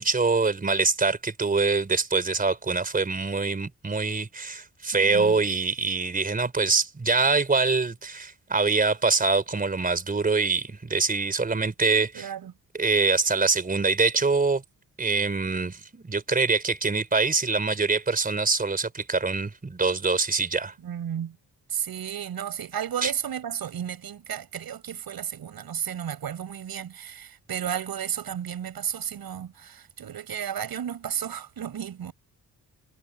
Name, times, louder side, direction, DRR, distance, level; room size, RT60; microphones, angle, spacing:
voice 1, 0.0-12.3 12.7-14.6 15.0-20.7 23.0-23.1, right 4 dB, 25° right, 4.4 m, -24 dB
voice 2, 4.9-5.4 12.1-12.5 20.8-21.4 21.7-32.1, right 9 dB, 85° right, 7.8 m, -33 dB
wide cardioid pair, 170°, 36 cm